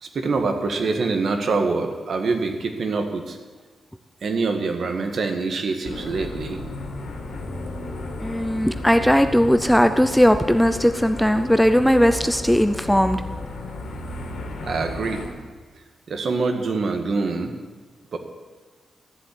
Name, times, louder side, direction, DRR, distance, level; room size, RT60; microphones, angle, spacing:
voice 1, 0.0-3.4 4.2-6.6 14.6-15.2 16.1-17.5 18.1-18.2, right 4 dB, 55° right, 5 dB, 1.8 m, -25 dB
sound 1, 5.8-15.3, left 2 dB, 90° left, 2.8 m, -33 dB
voice 2, 8.2-13.2, equal, ahead, 9 dB, 0.5 m, -18 dB
14.0 x 7.8 x 10.0 m, 1.4 s
wide cardioid pair, 140°, 0 cm